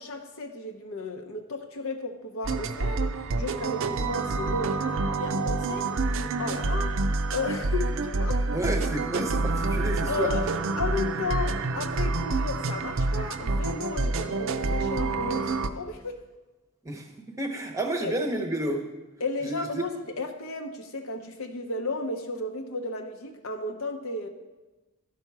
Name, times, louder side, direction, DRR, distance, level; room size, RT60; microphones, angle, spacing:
voice 1, 0.0-7.0 7.3-8.4 9.7-10.4 10.8-16.2 18.0-18.2 19.2-24.3, left 3 dB, 70° left, 4 dB, 0.8 m, -34 dB
sound 1, 2.4-15.7, right 3 dB, 60° right, 0.5 m, -27 dB
voice 2, 8.5-10.3 16.8-17.1 17.4-18.8 19.4-19.9, right 1 dB, 15° right, 3 dB, 0.8 m, -30 dB
11.5 x 5.7 x 4.7 m, 1.1 s
head